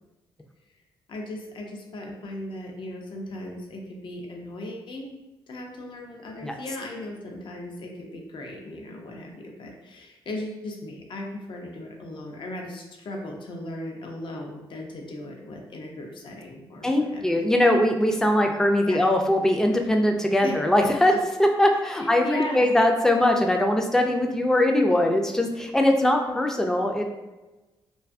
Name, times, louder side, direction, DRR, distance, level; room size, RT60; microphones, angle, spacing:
voice 1, 1.1-5.1 5.5-17.5 18.8-19.0 20.4-20.6 21.9-22.7, left 1 dB, 60° left, 1 dB, 0.5 m, -37 dB
voice 2, 16.8-21.1 21.4-27.0, left 1 dB, 5° left, 3 dB, 0.3 m, -21 dB
2.6 x 2.3 x 2.4 m, 1.1 s
cardioid pair, 75°, 10 cm